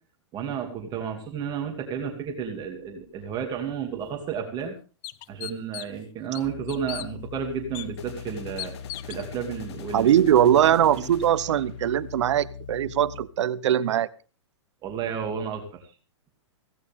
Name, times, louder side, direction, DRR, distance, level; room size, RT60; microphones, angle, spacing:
voice 1, 0.3-4.7 5.3-8.7 9.0-10.1 10.7-11.2 14.8-15.6, right 7 dB, 30° right, 3 dB, 2.7 m, -32 dB
sound 1, 3.2-3.4 8.0-12.1, left 7 dB, 60° left, 2.3 m, -47 dB
sound 2, 4.0-4.1 4.6-4.7 5.0-6.0 6.3-7.1 7.7-7.9 8.6-9.2, left 19 dB, 40° left, 0.7 m, -37 dB
sound 3, 6.4-13.3, left 7 dB, 80° left, 1.2 m, -41 dB
voice 2, 9.9-14.1, right 10 dB, 70° right, 19 dB, 0.9 m, -21 dB
16.5 x 15.0 x 3.6 m, 0.35 s
hypercardioid pair, 130°, 16 cm